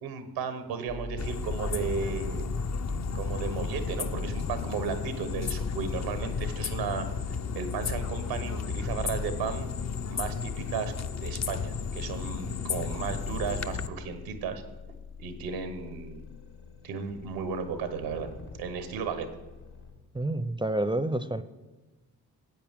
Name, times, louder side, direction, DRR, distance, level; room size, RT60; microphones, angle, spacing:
voice 1, 0.0-2.4 3.1-7.1 7.5-9.7 10.1-14.6 15.2-16.2 16.8-18.3 18.6-19.3, right 5 dB, 90° right, 9 dB, 1.1 m, -34 dB
sound 1, 0.9-19.9, left 2 dB, 65° left, 1.9 m, -42 dB
sound 2, 1.2-13.9, left 6 dB, 40° left, 0.7 m, -33 dB
voice 2, 20.1-21.4, right 1 dB, 10° right, 13 dB, 0.5 m, -28 dB
13.5 x 8.6 x 3.5 m, 1.1 s
hypercardioid pair, 40°, 41 cm